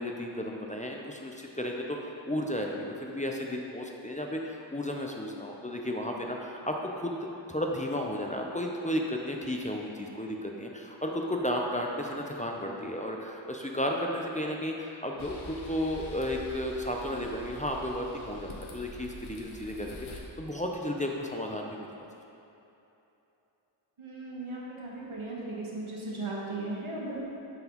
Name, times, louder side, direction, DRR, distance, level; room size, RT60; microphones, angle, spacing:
voice 1, 0.0-2.0 2.3-21.9, left 1 dB, 15° left, 0 dB, 0.5 m, -33 dB
sound 1, 15.2-20.2, left 2 dB, 85° left, 0.7 m, -45 dB
voice 2, 24.0-27.2, right 2 dB, 85° right, -4 dB, 1.1 m, -37 dB
9.0 x 4.0 x 2.9 m, 2.9 s
wide cardioid pair, 40°, 48 cm